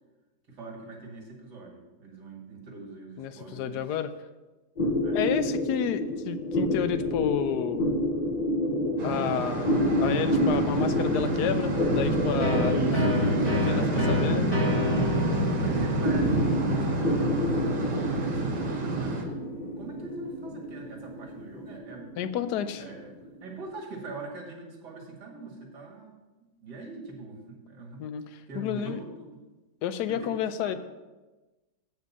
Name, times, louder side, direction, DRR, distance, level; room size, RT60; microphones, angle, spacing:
voice 1, 0.5-3.9 5.0-5.2 12.7-13.9 15.2-19.4 19.8-22.1 22.8-23.1 23.4-26.1 26.6-28.0 28.5-29.4 30.1-30.8, right 3 dB, 65° right, 0 dB, 2.4 m, -41 dB
voice 2, 3.2-4.1 5.1-7.9 9.0-13.3 13.5-14.6 22.2-22.8 28.0-28.2 28.5-29.0 29.8-30.7, left 9 dB, 70° left, 11 dB, 1.1 m, -30 dB
sound 1, 4.8-23.5, left 1 dB, 35° left, 0.7 m, -29 dB
sound 2, 9.0-19.2, right 3 dB, 90° right, 2.1 m, -29 dB
sound 3, 12.4-19.9, left 3 dB, 20° right, 0.9 m, -31 dB
8.1 x 5.1 x 7.2 m, 1.2 s
omnidirectional pair, 1.9 m